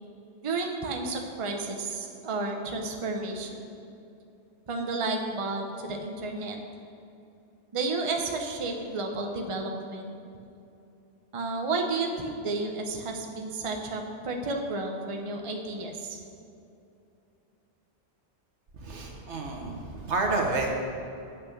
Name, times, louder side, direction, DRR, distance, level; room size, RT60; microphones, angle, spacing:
voice 1, 0.4-3.7 4.7-6.6 7.7-10.1 11.3-16.2, right 3 dB, 30° right, 3 dB, 0.7 m, -32 dB
voice 2, 18.7-20.8, right 2 dB, 75° right, 1 dB, 1.5 m, -30 dB
8.4 x 5.8 x 6.7 m, 2.7 s
omnidirectional pair, 1.2 m